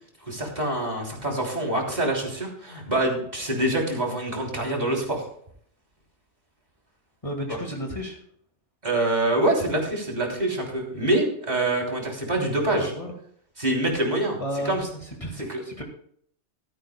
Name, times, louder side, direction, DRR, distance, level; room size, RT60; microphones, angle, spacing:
voice 1, 0.3-5.3 8.8-12.9 13.6-14.4 14.6-14.8 15.5-15.6, right 1 dB, 40° right, -1 dB, 3.3 m, -25 dB
voice 2, 7.2-8.2 12.7-13.1 14.4-15.8, equal, 30° left, 1 dB, 2.0 m, -33 dB
15.5 x 13.5 x 2.3 m, 0.63 s
omnidirectional pair, 1.2 m